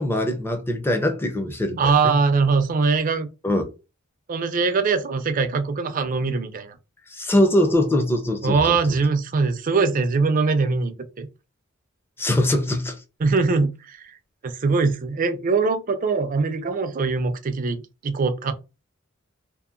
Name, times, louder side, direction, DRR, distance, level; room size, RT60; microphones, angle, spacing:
voice 1, 0.0-2.1 3.4-3.6 7.1-8.8 12.2-13.0, left 1 dB, 10° left, 0.5 m, -22 dB
voice 2, 1.8-3.3 4.3-6.8 8.4-11.3 13.2-14.1 14.4-18.5, right 4 dB, 45° right, 0.4 m, -22 dB
2.7 x 2.5 x 2.5 m
head